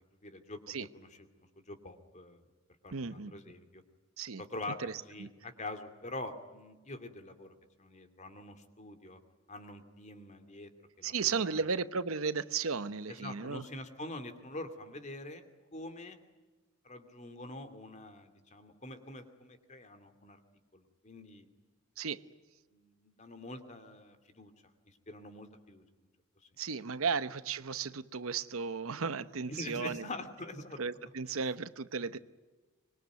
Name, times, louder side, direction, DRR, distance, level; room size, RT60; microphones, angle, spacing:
voice 1, 0.2-1.3 1.7-2.4 2.8-3.8 4.4-7.5 7.8-9.2 9.5-10.7 11.0-11.6 13.1-15.4 15.7-16.2 16.8-20.4 20.7-21.5 22.7-24.5 24.9-25.8 29.5-30.8 31.2-31.4, left 2 dB, 35° left, 2.6 m, -45 dB
voice 2, 2.9-3.3 4.2-4.4 4.8-4.9 5.2-5.3 11.0-13.6 22.0-22.2 26.6-30.0 30.8-32.2, right 5 dB, 80° right, 0.9 m, -35 dB
25.0 x 22.0 x 9.4 m
head